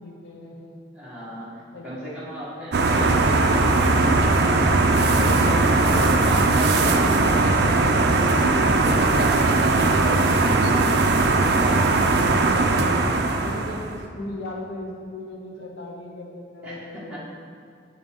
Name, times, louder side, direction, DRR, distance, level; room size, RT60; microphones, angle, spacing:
voice 1, 0.0-0.6 1.3-1.9 13.2-17.2, left 1 dB, 70° left, -2 dB, 0.8 m, -38 dB
voice 2, 0.9-1.5 1.8-11.0 11.5-12.0 16.6-17.2, equal, 5° right, -9 dB, 1.5 m, -34 dB
sound 1, 2.7-14.0, right 3 dB, 60° right, 0.4 m, -19 dB
6.5 x 5.5 x 3.6 m, 2.3 s
head